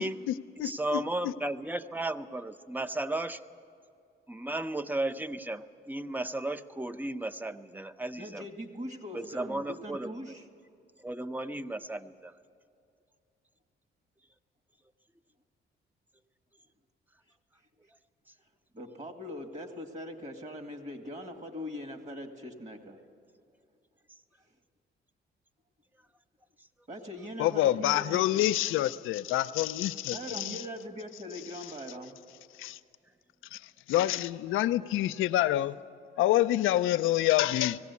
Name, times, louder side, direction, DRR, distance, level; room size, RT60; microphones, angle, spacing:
voice 1, 0.0-1.3 27.4-30.6 32.6-32.8 33.5-33.6 33.9-35.7 36.2-37.8, left 14 dB, 85° left, 12 dB, 0.6 m, -27 dB
voice 2, 0.6-3.4 4.3-8.4 9.1-10.1 11.0-12.3, right 1 dB, 10° right, 11 dB, 0.7 m, -34 dB
voice 3, 8.2-10.5 18.7-23.0 26.9-28.5 30.1-32.2, equal, 35° right, 5 dB, 2.1 m, -41 dB
19.0 x 16.5 x 8.3 m, 2.5 s
cardioid pair, 90°, 20 cm